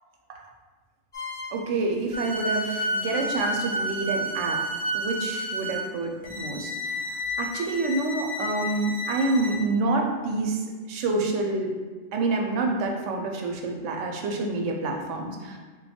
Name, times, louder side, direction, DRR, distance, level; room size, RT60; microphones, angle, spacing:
sound 1, 1.1-1.6 2.1-9.6, equal, 25° left, 0.6 m, -31 dB
voice 1, 1.5-4.6 4.9-10.6 10.9-11.7 12.1-15.6, right 3 dB, 75° right, 1 dB, 0.9 m, -28 dB
3.6 x 2.3 x 4.2 m, 1.3 s
omnidirectional pair, 1.3 m